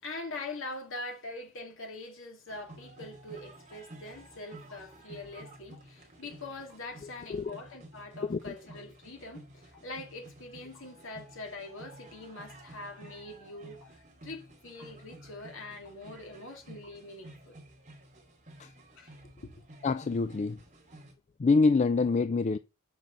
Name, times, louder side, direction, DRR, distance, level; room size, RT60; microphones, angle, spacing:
voice 1, 0.0-17.6 19.0-19.1 19.4-19.6, left 2 dB, 60° left, 2.8 m, -43 dB
sound 1, 2.5-21.1, right 1 dB, 35° right, 2.8 m, -52 dB
sound 2, 2.7-2.9 3.7-3.9 4.7-4.9 5.7-5.9 6.7-6.9 7.7-7.9 8.7-8.9 9.7-9.9 10.7-10.9 11.8-11.9 12.8-12.9 13.8-14.0 14.8-15.0 15.9-16.0 16.8-17.0, left 2 dB, 80° left, 3.6 m, -60 dB
voice 2, 7.0-7.6 8.3-8.5 18.6-18.7 19.8-20.6 21.4-22.6, left 4 dB, 30° left, 0.3 m, -26 dB
7.7 x 5.3 x 5.4 m
head